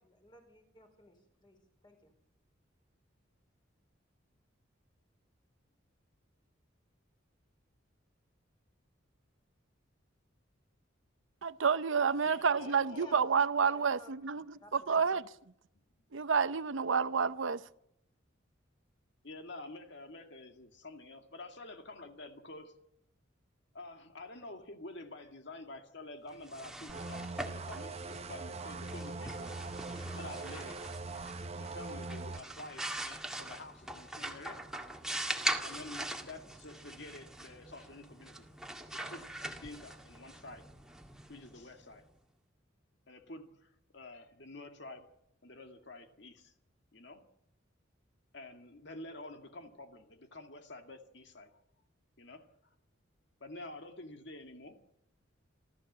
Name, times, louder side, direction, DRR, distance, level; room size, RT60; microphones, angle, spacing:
voice 1, 0.0-1.6 1.8-2.1 12.9-15.2, left 1 dB, 25° left, 4.7 m, -57 dB
voice 2, 11.4-14.4 14.7-15.2 16.1-17.6, right 6 dB, 75° right, 0.7 m, -29 dB
voice 3, 12.2-13.2 19.2-22.7 23.7-29.5 30.2-30.8 31.5-34.6 35.6-38.5 38.9-40.6 41.3-42.0 43.1-45.1 45.4-46.5 46.9-47.2 48.3-51.5 52.2-52.4 53.4-54.8, left 2 dB, 60° left, 2.1 m, -49 dB
sound 1, 26.3-42.0, right 1 dB, 5° right, 1.9 m, -42 dB
sound 2, 26.9-32.4, right 3 dB, 30° right, 0.8 m, -42 dB
27.0 x 14.0 x 7.4 m
head